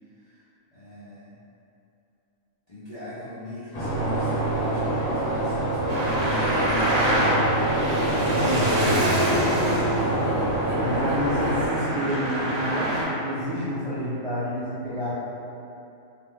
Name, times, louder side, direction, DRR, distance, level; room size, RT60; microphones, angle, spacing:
voice 1, 0.7-1.3 2.7-6.6, left 1 dB, 45° left, -13 dB, 0.5 m, -42 dB
sound 1, 3.7-11.7, right 1 dB, 85° left, 1.1 m, -26 dB
Traffic noise roadway noise, 5.9-13.0, right 1 dB, 85° right, 1.0 m, -26 dB
sound 2, 6.4-11.7, left 1 dB, 60° left, 1.0 m, -41 dB
voice 2, 8.2-9.2 10.8-15.1, equal, 55° right, -13 dB, 0.3 m, -29 dB
2.5 x 2.2 x 3.3 m, 2.7 s
omnidirectional pair, 1.4 m